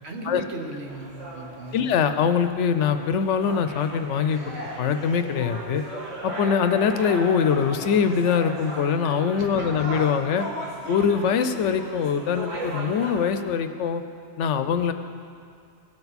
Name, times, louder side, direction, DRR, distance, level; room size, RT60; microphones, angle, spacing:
voice 1, 0.0-1.9 9.4-9.8, right 2 dB, 60° right, 1 dB, 1.4 m, -37 dB
sound 1, 0.8-13.3, right 1 dB, 80° right, 2.1 m, -36 dB
voice 2, 1.7-5.8 6.2-10.5 10.9-14.0 14.4-14.9, left 7 dB, 75° left, 9 dB, 0.9 m, -23 dB
18.0 x 6.9 x 4.1 m, 2.3 s
omnidirectional pair, 1.3 m